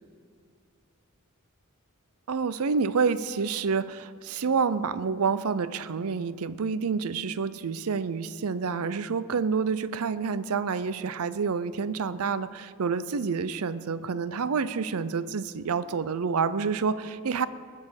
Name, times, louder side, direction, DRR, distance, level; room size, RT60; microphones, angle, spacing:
voice 1, 2.3-17.5, right 5 dB, 85° right, 16 dB, 0.5 m, -28 dB
20.0 x 7.4 x 6.4 m, 2.2 s
head